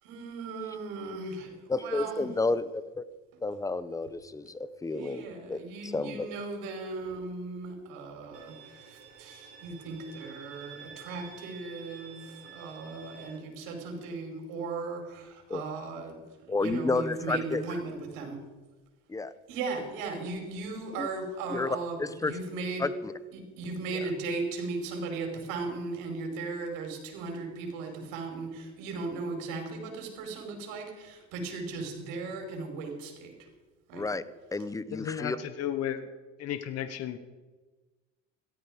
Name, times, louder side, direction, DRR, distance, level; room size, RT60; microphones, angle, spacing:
voice 1, 0.0-2.3 4.9-18.4 19.5-22.9 23.3-33.5 33.9-34.1, right 3 dB, 75° right, 3 dB, 5.0 m, -37 dB
voice 2, 1.7-3.0 3.4-5.6 5.9-6.3 15.5-15.6 16.5-17.6 19.1-19.3 21.0-21.1 21.5-21.7 22.0-22.3 22.8-22.9 33.9-34.2 34.5-35.4, left 3 dB, 10° left, 15 dB, 0.8 m, -31 dB
Bowed string instrument, 8.3-13.4, right 6 dB, 45° right, 5.8 m, -50 dB
voice 3, 34.9-36.1 36.4-37.2, left 10 dB, 50° left, 11 dB, 1.2 m, -33 dB
16.5 x 13.5 x 5.2 m, 1.2 s
supercardioid pair, 100°, 33 cm